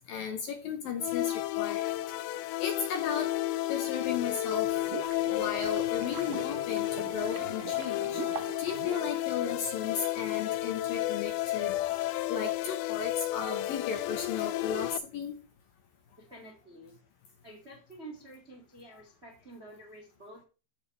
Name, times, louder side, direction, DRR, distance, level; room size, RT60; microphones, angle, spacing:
voice 1, 0.1-2.0 2.6-3.3 3.7-4.7 5.3-8.2 8.6-12.0 12.3-15.3, left 6 dB, 70° left, 5 dB, 2.4 m, -35 dB
sound 1, 1.0-15.0, left 15 dB, 85° left, 2.8 m, -32 dB
sound 2, 4.5-9.9, right 12 dB, 80° right, 2.3 m, -43 dB
voice 2, 16.2-17.0 17.4-20.4, right 1 dB, 30° right, -1 dB, 1.1 m, -49 dB
14.0 x 5.3 x 3.3 m, 0.32 s
omnidirectional pair, 5.0 m